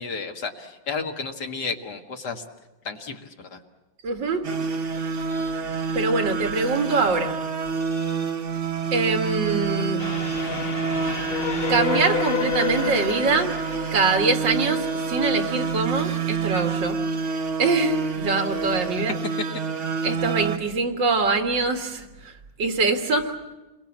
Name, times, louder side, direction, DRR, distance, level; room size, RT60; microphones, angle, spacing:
voice 1, 0.0-2.4 2.8-3.6 19.1-19.6, left 4 dB, 60° left, 4 dB, 2.3 m, -32 dB
voice 2, 4.0-4.5 5.9-7.4 8.9-10.1 11.7-13.6 13.9-17.0 17.6-19.1 20.0-22.3 22.6-23.3, right 3 dB, 75° right, 5 dB, 2.5 m, -24 dB
sound 1, 4.4-20.6, right 5 dB, 45° right, 1.3 m, -28 dB
Train, 10.0-15.3, left 7 dB, 40° left, 1.1 m, -30 dB
29.0 x 22.5 x 7.3 m, 1.1 s
omnidirectional pair, 2.0 m